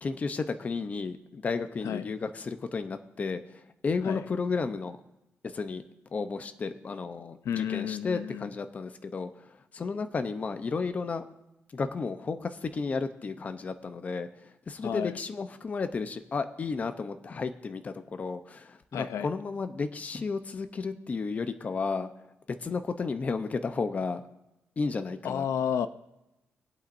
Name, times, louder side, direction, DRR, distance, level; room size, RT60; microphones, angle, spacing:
voice 1, 0.0-5.0 5.4-5.8 6.1-11.2 11.7-22.1 22.6-24.2 24.8-25.4, left 4 dB, 30° left, 9 dB, 0.6 m, -33 dB
voice 2, 7.4-8.5 14.8-15.2 18.9-19.3 25.2-25.9, left 8 dB, 80° left, 11 dB, 0.6 m, -31 dB
23.0 x 8.4 x 2.6 m, 0.91 s
wide cardioid pair, 170°, 5 cm